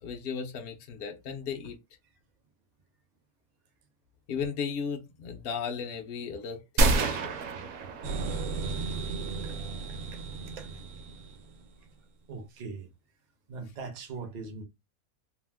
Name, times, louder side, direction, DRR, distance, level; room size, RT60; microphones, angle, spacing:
voice 1, 0.0-1.8 4.3-7.3, left 6 dB, 65° left, 0.6 m, -35 dB
sound 1, 6.8-8.7, right 2 dB, 65° right, 0.9 m, -27 dB
sound 2, 8.0-11.9, right 4 dB, 85° right, 1.2 m, -35 dB
voice 2, 12.3-12.9 13.5-14.6, right 4 dB, 50° right, 0.5 m, -40 dB
2.8 x 2.0 x 3.3 m
omnidirectional pair, 1.5 m